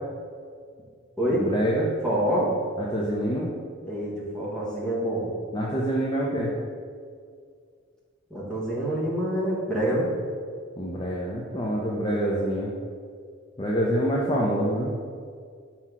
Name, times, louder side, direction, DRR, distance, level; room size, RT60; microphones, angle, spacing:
voice 1, 1.3-1.9 2.9-3.5 5.5-6.5 10.8-12.7 13.6-14.9, equal, 20° left, -5 dB, 0.7 m, -26 dB
voice 2, 2.0-2.5 3.8-5.3 8.3-10.1, right 1 dB, 5° left, -7 dB, 1.6 m, -26 dB
6.0 x 4.3 x 6.1 m, 2.1 s
head